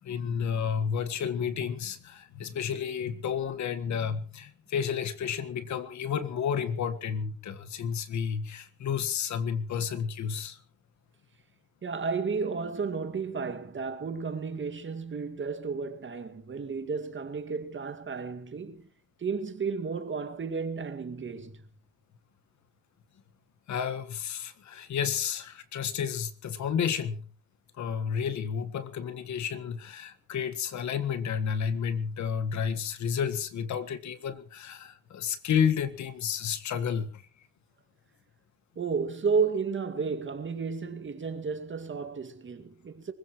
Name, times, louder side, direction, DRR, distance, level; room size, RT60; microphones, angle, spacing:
voice 1, 0.0-10.6 23.7-27.2 27.8-37.2, left 7 dB, 70° left, 1.7 m, -31 dB
voice 2, 11.8-18.9 19.2-21.6 38.8-43.1, right 5 dB, 40° right, 2.2 m, -32 dB
25.5 x 15.5 x 3.2 m
cardioid pair, 90°, 30 cm